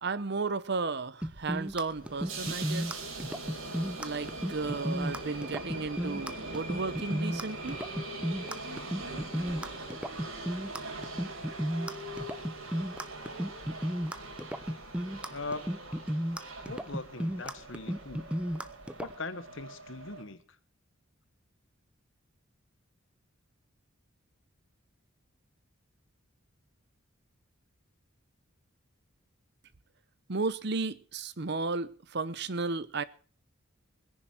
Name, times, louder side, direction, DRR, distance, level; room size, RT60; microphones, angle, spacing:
voice 1, 0.0-3.1 4.0-7.8 30.3-33.0, right 3 dB, 50° right, 0.8 m, -34 dB
sound 1, 1.2-19.1, equal, 5° right, 0.7 m, -34 dB
sound 2, 1.9-20.2, right 2 dB, 80° right, 4.8 m, -42 dB
voice 2, 15.3-15.8 16.7-18.3 19.0-20.4, left 3 dB, 60° left, 1.2 m, -40 dB
21.0 x 10.5 x 4.4 m
head